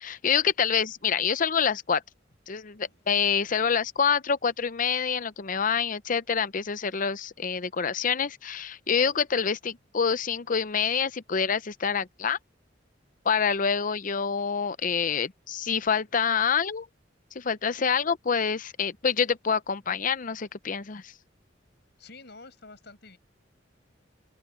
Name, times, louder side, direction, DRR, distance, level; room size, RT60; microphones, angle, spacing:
voice 1, 0.0-2.0 2.5-12.4 13.2-16.9 17.3-21.1, left 6 dB, 45° left, 0.6 m, -26 dB
voice 2, 2.7-3.0 22.0-23.2, left 3 dB, 60° left, 5.9 m, -49 dB
open air
head